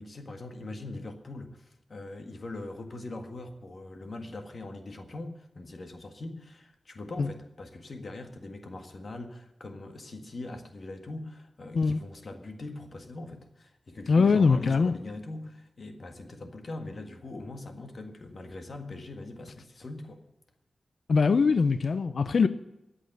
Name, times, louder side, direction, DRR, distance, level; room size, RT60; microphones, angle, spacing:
voice 1, 0.0-20.2, left 2 dB, 45° left, 5 dB, 1.7 m, -41 dB
voice 2, 14.1-14.9 21.1-22.5, left 4 dB, 60° left, 12 dB, 0.6 m, -22 dB
14.5 x 8.8 x 7.9 m, 0.93 s
wide cardioid pair, 125°, 0 cm